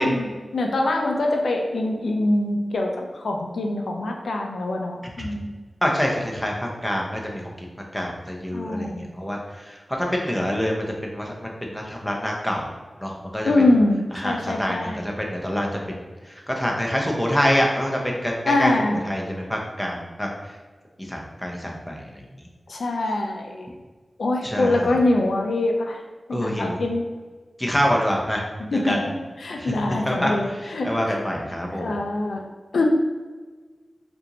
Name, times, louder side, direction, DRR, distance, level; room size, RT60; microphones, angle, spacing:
voice 1, 0.0-5.5 8.5-9.1 13.4-15.0 18.5-19.0 22.7-23.7 24.2-26.0 26.3-27.0 28.7-29.1 29.4-31.2 31.8-32.4 32.7-32.8, left 2 dB, 90° left, 2 dB, 0.4 m, -24 dB
voice 2, 5.8-7.5 7.9-12.7 13.0-13.5 14.1-16.0 16.5-18.7 19.0-20.3 21.1-22.0 24.4-24.9 26.3-26.8 27.6-28.4 28.7-29.0 29.6-29.7 30.0-32.1, equal, 5° left, -1 dB, 0.8 m, -26 dB
4.3 x 2.6 x 2.9 m, 1.4 s
cardioid pair, 45°, 0 cm